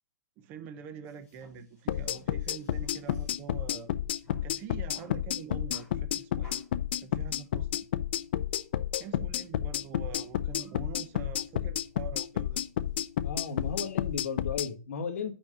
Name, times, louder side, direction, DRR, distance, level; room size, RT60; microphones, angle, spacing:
voice 1, 0.4-3.9 4.4-6.6 7.0-7.9 9.0-12.6, right 8 dB, 20° right, 0.5 m, -45 dB
sound 1, 1.0-14.4, left 3 dB, 10° left, 3.4 m, -61 dB
sound 2, 1.9-14.7, left 11 dB, 35° left, 0.4 m, -31 dB
voice 2, 13.2-15.3, left 5 dB, 50° left, 1.4 m, -35 dB
5.9 x 5.1 x 6.7 m
hypercardioid pair, 175°, 10 cm